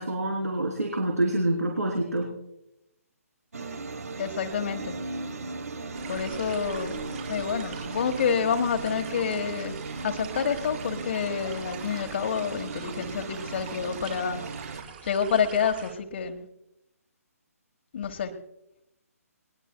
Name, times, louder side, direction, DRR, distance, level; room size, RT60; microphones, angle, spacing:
voice 1, 0.0-2.3, right 1 dB, 90° right, 1 dB, 3.3 m, -27 dB
sound 1, 3.5-14.8, right 3 dB, 70° right, 1.1 m, -37 dB
voice 2, 4.2-5.0 6.1-7.0 7.3-9.7 10.0-14.4 15.0-16.5 17.9-18.3, left 7 dB, 45° left, 4 dB, 1.3 m, -28 dB
sound 2, 5.9-15.9, right 7 dB, 35° right, 4.5 m, -44 dB
21.0 x 20.0 x 2.2 m, 0.86 s
figure-of-eight pair, 140°, 8 cm